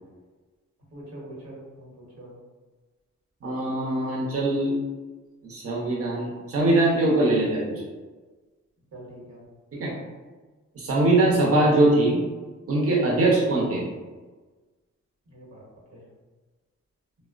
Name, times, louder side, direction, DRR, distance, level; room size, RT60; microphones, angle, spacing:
voice 1, 0.9-2.3 8.9-9.4 13.2-13.4 15.3-15.6 15.9-16.0, right 1 dB, 70° right, -5 dB, 1.1 m, -44 dB
voice 2, 3.4-4.8 5.4-7.8 9.7-9.9 10.8-12.2 12.7-13.9, right 2 dB, 50° right, -4 dB, 0.8 m, -22 dB
2.9 x 2.0 x 2.4 m, 1.3 s
cardioid pair, 50°, 29 cm